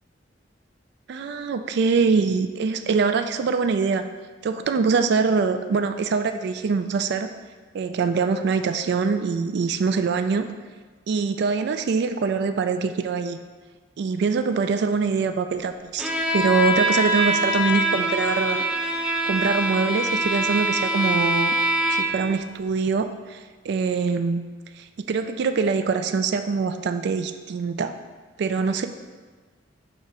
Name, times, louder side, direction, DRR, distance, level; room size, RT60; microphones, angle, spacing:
voice 1, 1.1-4.1 4.4-7.3 7.7-10.5 11.1-13.4 14.0-18.6 19.0-21.6 21.9-24.5 24.8-27.9 28.4-28.9, right 5 dB, 65° right, 9 dB, 0.3 m, -24 dB
Bowed string instrument, 16.0-22.3, right 1 dB, 5° right, 0.5 m, -24 dB
6.7 x 3.0 x 4.8 m, 1.4 s
head